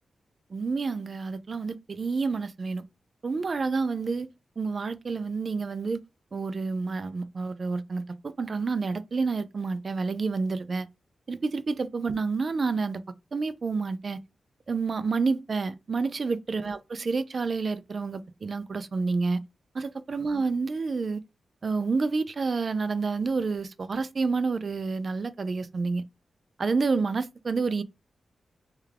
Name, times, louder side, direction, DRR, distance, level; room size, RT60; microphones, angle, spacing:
voice 1, 0.5-2.8 3.2-4.3 4.6-6.0 6.3-10.9 11.3-13.0 13.3-14.2 14.7-19.4 19.7-21.2 21.6-26.0 26.6-27.8, right 4 dB, 40° right, 0.3 m, -29 dB
3.4 x 2.3 x 3.3 m
wide cardioid pair, 150°, 0 cm